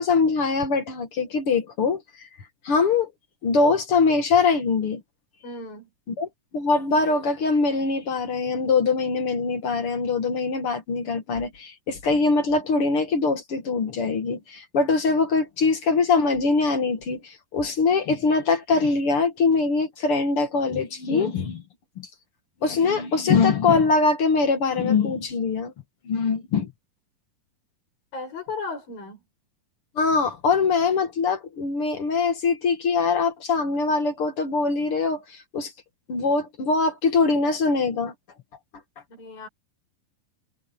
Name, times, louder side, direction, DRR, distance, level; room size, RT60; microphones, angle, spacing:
voice 1, 0.0-2.3 2.6-3.1 3.4-5.0 6.1-6.3 6.5-21.6 22.0-22.1 22.6-25.7 26.0-26.7 30.0-35.7 36.1-38.1, left 4 dB, 45° left, 2.2 m, -23 dB
voice 2, 5.4-5.9 28.1-29.2 39.1-39.5, left 3 dB, 75° left, 9.5 m, -35 dB
omnidirectional pair, 4.1 m